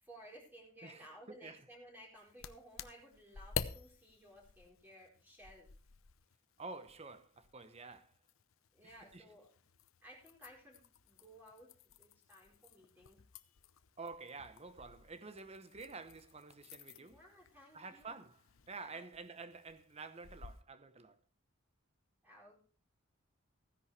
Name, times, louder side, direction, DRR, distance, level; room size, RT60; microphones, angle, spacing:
voice 1, 0.0-5.7 8.7-9.5 10.0-13.2 17.0-18.2 18.9-19.4 22.2-22.6, equal, 10° right, 4.3 m, -58 dB
voice 2, 0.8-1.6 6.6-8.1 8.8-9.2 14.0-17.2 17.7-18.4 18.7-21.2, right 4 dB, 30° right, 1.0 m, -49 dB
sound 1, 2.2-20.6, left 6 dB, 85° left, 0.8 m, -50 dB
15.5 x 10.0 x 3.3 m
head